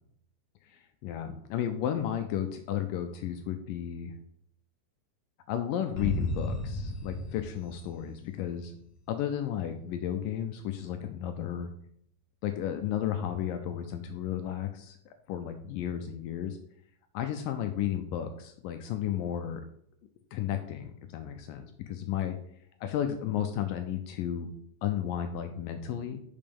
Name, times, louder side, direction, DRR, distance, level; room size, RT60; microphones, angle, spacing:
voice 1, 0.7-4.1 5.5-8.7 9.1-11.7 12.4-15.0 15.3-16.6 17.1-19.6 20.3-22.4 22.8-24.5 24.8-26.2, left 10 dB, 80° left, 6 dB, 2.0 m, -33 dB
sound 1, 6.0-8.7, left 2 dB, 55° left, 2.9 m, -34 dB
6.8 x 5.3 x 5.3 m, 0.67 s
omnidirectional pair, 4.4 m